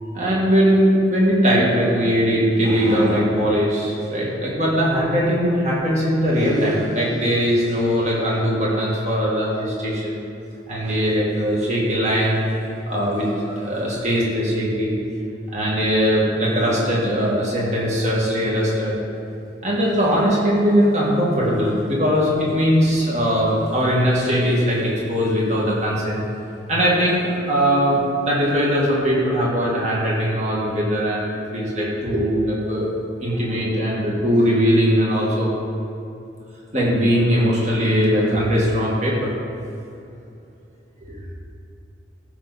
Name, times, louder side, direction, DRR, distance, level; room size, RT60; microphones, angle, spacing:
voice 1, 0.1-10.2 10.7-15.0 15.5-19.0 19.6-26.2 26.7-32.9 33.2-35.5 36.7-39.3 41.0-41.2, equal, 40° right, -5 dB, 2.2 m, -20 dB
14.5 x 6.8 x 4.3 m, 2.7 s
head